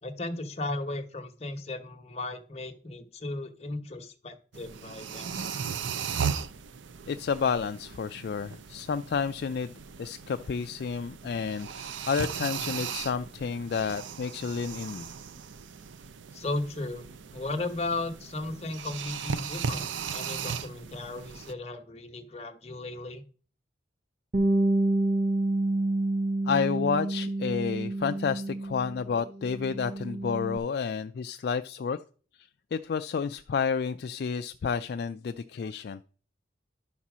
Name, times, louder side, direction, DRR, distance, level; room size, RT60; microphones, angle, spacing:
voice 1, 0.0-5.6 16.3-17.1 17.3-23.2, left 2 dB, 35° left, 5 dB, 1.0 m, -36 dB
sound 1, 4.5-21.5, right 6 dB, 80° right, 0.5 m, -37 dB
voice 2, 7.1-9.7 10.0-15.1 26.5-32.0 32.7-36.0, left 6 dB, 55° left, 9 dB, 0.3 m, -30 dB
Bass guitar, 24.3-29.1 29.4-30.6, right 2 dB, 50° right, 0.8 m, -28 dB
11.0 x 4.2 x 6.1 m, 0.42 s
head